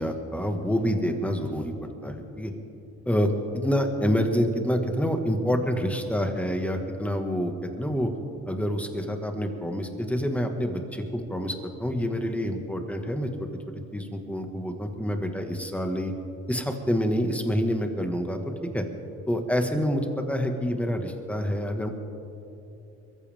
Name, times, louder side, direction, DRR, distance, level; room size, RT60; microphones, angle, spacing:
voice 1, 0.0-1.7 2.0-2.5 3.1-8.1 8.5-11.5 11.8-13.3 13.9-16.1 16.5-18.8 19.3-21.9, equal, 5° left, 4 dB, 1.8 m, -27 dB
22.5 x 14.5 x 3.6 m, 2.9 s
cardioid pair, 90°, 30 cm